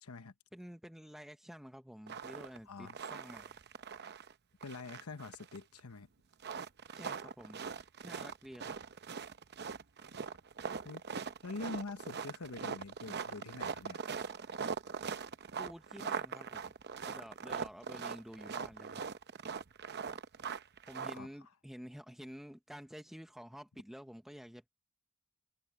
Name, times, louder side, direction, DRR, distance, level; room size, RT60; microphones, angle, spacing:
voice 1, 0.0-0.3 2.7-3.0 4.6-6.1 10.8-11.0 11.4-14.0 21.1-21.3, left 3 dB, 80° left, 1.0 m, -45 dB
voice 2, 0.5-3.6 6.9-7.6 8.0-8.7 15.6-16.7 17.0-19.0 20.9-24.7, equal, ahead, 0.9 m, -50 dB
sound 1, 2.1-2.6 2.9-4.3 4.6-5.8 6.3-21.2, right 6 dB, 50° right, 0.8 m, -41 dB
head